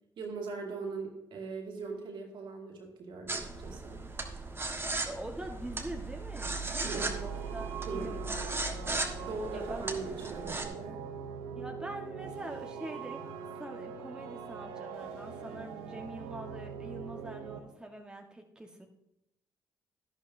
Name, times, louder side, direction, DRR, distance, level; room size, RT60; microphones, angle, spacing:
voice 1, 0.2-4.0 6.8-7.1 7.9-8.2 9.3-11.0, right 4 dB, 65° right, 1 dB, 2.2 m, -40 dB
sound 1, 3.3-10.6, right 3 dB, 25° right, 1.5 m, -37 dB
voice 2, 5.0-9.9 11.5-13.2 13.5-18.9, right 1 dB, 10° right, 2 dB, 1.4 m, -44 dB
sound 2, 6.9-17.6, right 6 dB, 85° right, 0.8 m, -43 dB
11.5 x 11.0 x 2.7 m, 0.87 s
hypercardioid pair, 45°, 9 cm